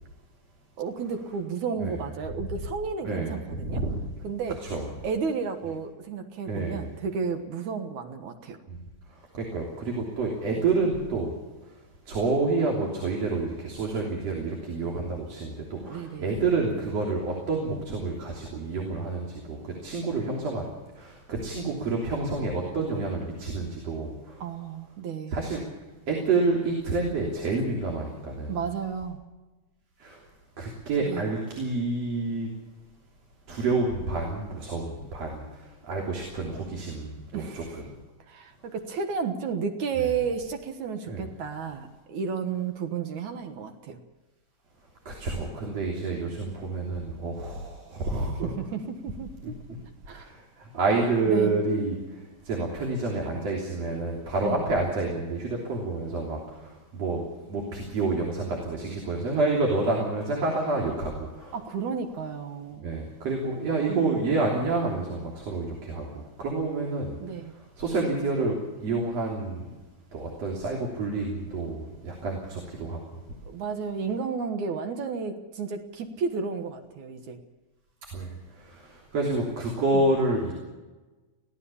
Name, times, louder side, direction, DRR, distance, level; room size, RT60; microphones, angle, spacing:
voice 1, 0.8-3.8 4.2-4.6 5.0-8.6 10.5-10.6 15.8-16.3 24.4-25.3 28.5-29.2 31.0-31.3 37.3-37.8 38.3-44.0 48.3-49.6 50.1-50.3 51.3-51.6 54.4-54.6 61.5-63.0 63.9-64.2 67.2-67.6 73.5-77.4 79.9-80.0, right 5 dB, 65° right, 6 dB, 2.6 m, -32 dB
voice 2, 3.0-4.0 4.6-4.9 6.5-6.8 8.7-8.8 9.3-11.3 12.1-20.7 21.0-24.4 25.3-25.6 26.1-28.6 30.0-30.2 30.6-32.5 33.5-37.6 40.0-40.1 41.1-41.3 45.1-48.5 50.1-57.2 57.5-61.6 62.8-67.2 67.8-69.7 70.1-73.2 78.1-80.5, right 3 dB, 50° right, -1 dB, 4.3 m, -29 dB
23.0 x 17.0 x 7.1 m, 1.2 s
omnidirectional pair, 3.8 m